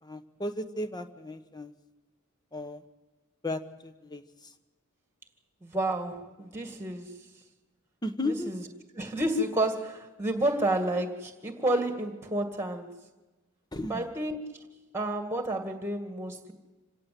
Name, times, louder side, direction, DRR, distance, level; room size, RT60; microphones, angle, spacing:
voice 1, 0.0-1.7 2.5-2.8 3.4-4.5 8.0-8.5 13.7-14.1, left 1 dB, 20° left, 10 dB, 1.1 m, -35 dB
voice 2, 5.6-7.2 8.2-8.6 9.0-12.9 13.9-14.4 14.9-16.5, right 1 dB, 10° right, 5 dB, 2.1 m, -30 dB
27.0 x 17.5 x 7.7 m, 1.2 s
head